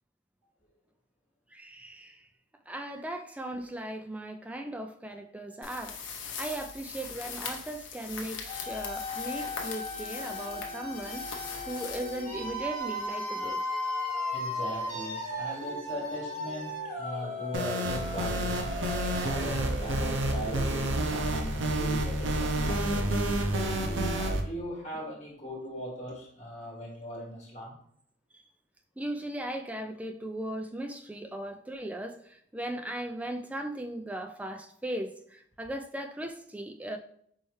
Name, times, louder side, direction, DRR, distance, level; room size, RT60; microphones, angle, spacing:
voice 1, 1.5-2.3 2.7-6.0 6.3-11.3 11.7-13.6 28.3-28.4 29.0-37.0, right 1 dB, 5° right, 4 dB, 0.3 m, -38 dB
sound 1, 5.6-12.8, left 5 dB, 90° left, 0.8 m, -41 dB
sound 2, 8.4-21.3, left 1 dB, 45° right, 1.5 m, -36 dB
voice 2, 14.3-18.8 19.1-23.1 23.7-27.8, equal, 40° left, -3 dB, 1.6 m, -39 dB
sound 3, 17.5-24.4, right 1 dB, 85° right, 0.6 m, -29 dB
4.6 x 3.2 x 3.1 m, 0.65 s
head